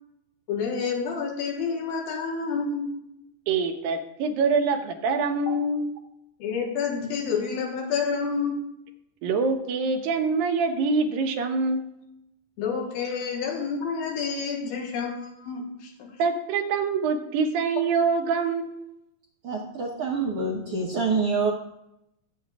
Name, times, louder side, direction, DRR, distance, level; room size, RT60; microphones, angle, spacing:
voice 1, 0.5-2.9 6.4-8.5 12.6-16.1, left 5 dB, 90° left, -1 dB, 3.2 m, -29 dB
voice 2, 3.5-5.9 9.2-11.9 16.2-18.9, right 4 dB, 80° right, 3 dB, 2.7 m, -25 dB
voice 3, 19.4-21.5, right 4 dB, 65° right, -2 dB, 1.5 m, -26 dB
15.5 x 8.3 x 2.4 m, 0.82 s
omnidirectional pair, 4.1 m